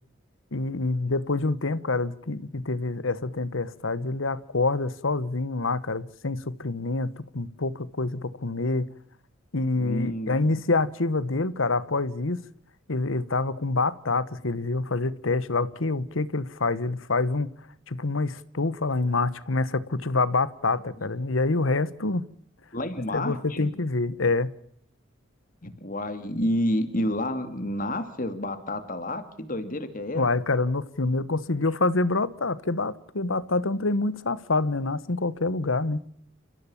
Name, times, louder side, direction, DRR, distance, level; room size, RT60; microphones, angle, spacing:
voice 1, 0.5-8.9 9.5-12.4 12.9-17.5 17.9-22.3 23.1-24.5 30.1-36.0, left 3 dB, 90° left, 1.2 m, -26 dB
voice 2, 9.8-10.6 22.7-23.7 25.6-30.3, left 1 dB, 45° left, 2.5 m, -30 dB
30.0 x 15.5 x 7.2 m
head